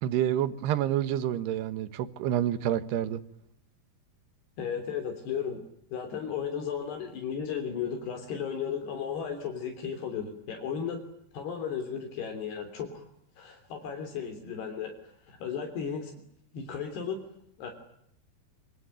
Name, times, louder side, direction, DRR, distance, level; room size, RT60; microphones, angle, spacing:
voice 1, 0.0-3.2, right 11 dB, 80° right, 3.4 m, -28 dB
voice 2, 4.6-5.6 5.9-11.0 11.3-13.1 13.4-16.1 16.5-17.2 17.6-17.7, left 7 dB, 75° left, 5.2 m, -35 dB
26.0 x 25.5 x 9.0 m
omnidirectional pair, 4.7 m